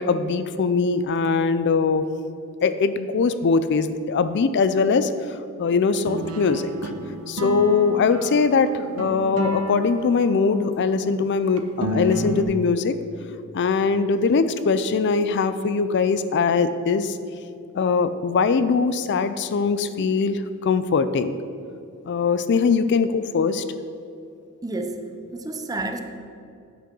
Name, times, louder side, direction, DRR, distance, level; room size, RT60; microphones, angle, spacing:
voice 1, 0.0-2.1 2.6-6.9 7.3-13.0 13.5-17.2 17.7-21.3 22.0-23.6, left 4 dB, 55° left, 12 dB, 0.4 m, -21 dB
sound 1, 6.0-11.1 11.6-12.4, equal, 80° right, 0.8 m, -31 dB
voice 2, 24.6-26.0, right 2 dB, 15° right, 6 dB, 0.6 m, -30 dB
8.5 x 6.1 x 6.0 m, 2.5 s
head